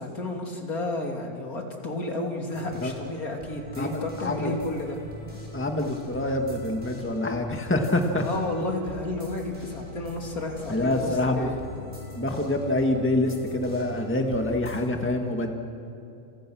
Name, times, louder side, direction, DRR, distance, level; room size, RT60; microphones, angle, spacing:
voice 1, 0.0-5.0 8.2-11.6, left 2 dB, 70° left, 1 dB, 3.3 m, -32 dB
sound 1, 2.5-14.8, equal, 40° right, 6.3 m, -43 dB
voice 2, 3.8-4.5 5.5-8.2 10.7-11.5 12.2-15.5, left 1 dB, 10° left, 3 dB, 1.8 m, -26 dB
30.0 x 28.0 x 6.3 m, 2.7 s
omnidirectional pair, 1.6 m